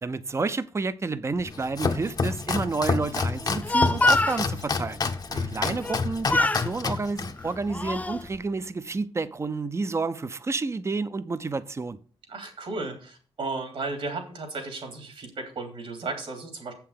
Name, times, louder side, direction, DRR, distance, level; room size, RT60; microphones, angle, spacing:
voice 1, 0.0-5.0 5.4-12.0, right 3 dB, 30° right, 0.6 m, -30 dB
Domestic sounds home sounds, 1.4-8.4, left 4 dB, 40° left, 0.8 m, -29 dB
Speech, 3.4-4.4 5.8-6.0 6.3-6.7 7.4-8.2, left 2 dB, 15° left, 0.4 m, -24 dB
voice 2, 5.3-5.7 12.3-16.7, right 3 dB, 70° right, 2.9 m, -35 dB
7.5 x 5.8 x 6.6 m
cardioid pair, 90°, 10 cm